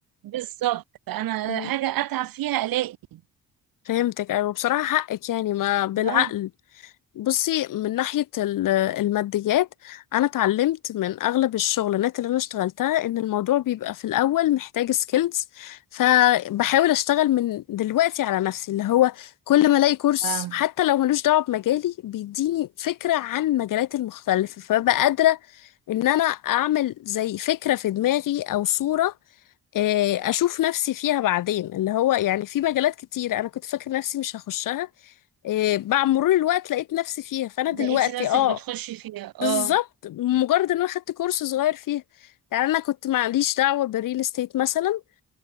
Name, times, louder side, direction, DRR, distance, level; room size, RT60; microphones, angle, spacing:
voice 1, 0.2-3.2 6.0-6.3 20.2-20.5 37.7-39.7, right 14 dB, 85° right, 1.0 m, -29 dB
voice 2, 3.9-6.5 7.2-25.4 25.9-29.1 29.7-34.9 35.4-38.6 39.4-42.0 42.5-45.0, left 13 dB, 65° left, 0.7 m, -23 dB
cardioid pair, 115°, 34 cm